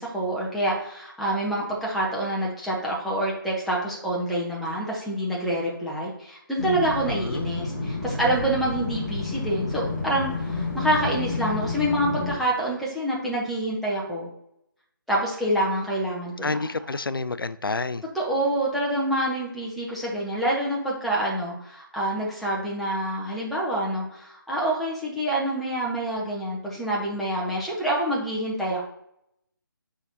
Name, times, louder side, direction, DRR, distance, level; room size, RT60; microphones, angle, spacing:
voice 1, 0.0-14.3 15.1-16.6 18.1-28.8, right 1 dB, ahead, -5 dB, 0.9 m, -27 dB
sound 1, 6.6-12.4, left 3 dB, 40° left, 1.7 m, -30 dB
voice 2, 7.1-7.5 16.4-18.0, left 3 dB, 75° left, 14 dB, 0.4 m, -29 dB
9.3 x 3.8 x 2.9 m, 0.75 s
figure-of-eight pair, 150°, 12 cm